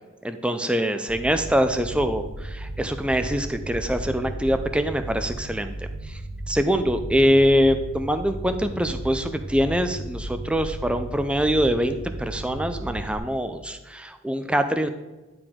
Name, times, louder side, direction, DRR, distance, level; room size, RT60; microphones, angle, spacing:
voice 1, 0.2-5.7 6.1-6.2 6.5-14.9, equal, 5° right, 8 dB, 0.4 m, -24 dB
sound 1, 1.1-13.2, right 1 dB, 50° right, 1.3 m, -35 dB
10.5 x 4.9 x 3.6 m, 1.2 s
head